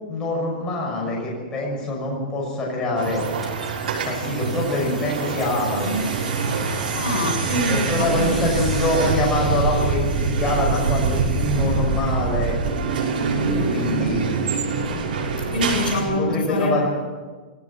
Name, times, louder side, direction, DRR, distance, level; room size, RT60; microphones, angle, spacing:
voice 1, 0.1-3.2 4.0-6.1 7.7-12.6 13.7-14.2 16.0-16.9, left 1 dB, 15° left, -2 dB, 6.1 m, -24 dB
sound 1, 3.0-10.0, equal, ahead, 4.6 m, -41 dB
sound 2, 3.0-16.0, right 4 dB, 85° right, 6.3 m, -24 dB
voice 2, 6.9-8.4 13.4-13.7 15.5-16.9, left 2 dB, 90° left, 2 dB, 7.4 m, -25 dB
20.0 x 18.0 x 7.4 m, 1.4 s
supercardioid pair, 165°, 5 cm